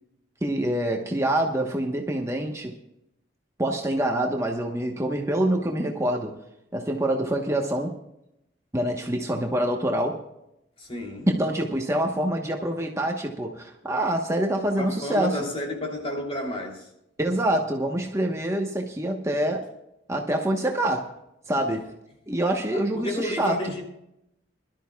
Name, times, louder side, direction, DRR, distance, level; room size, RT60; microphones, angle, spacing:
voice 1, 0.4-2.7 3.6-6.4 6.7-7.9 8.7-10.2 11.3-15.4 17.2-19.7 20.1-21.1 21.5-21.9 22.3-23.5, right 1 dB, 15° right, 1 dB, 1.1 m, -26 dB
voice 2, 10.8-11.3 14.8-16.9 22.7-23.8, left 1 dB, 35° left, 0 dB, 3.1 m, -31 dB
22.5 x 12.5 x 2.4 m, 0.82 s
head